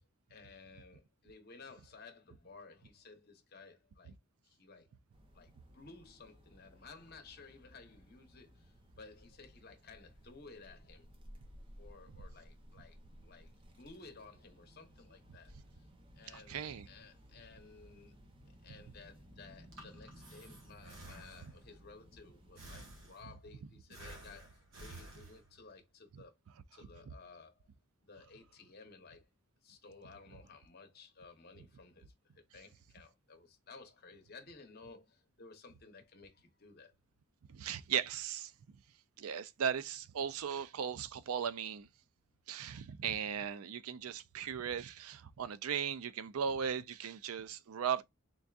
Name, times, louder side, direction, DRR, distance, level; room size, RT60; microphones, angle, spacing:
voice 1, 0.3-4.1 4.4-4.9 5.3-11.1 11.8-13.0 13.2-13.5 13.8-15.9 16.1-18.2 18.6-26.4 26.7-27.7 28.0-29.3 29.6-36.9, left 4 dB, 45° left, 0.9 m, -56 dB
sound 1, 5.1-23.0, equal, 25° right, 0.6 m, -58 dB
voice 2, 16.3-16.9 37.5-38.5 39.2-41.9 42.5-48.0, right 8 dB, 80° right, 0.4 m, -37 dB
Breathing, 19.5-21.8 22.6-23.5 23.9-25.7, right 1 dB, 60° right, 1.3 m, -53 dB
3.8 x 3.5 x 2.4 m
head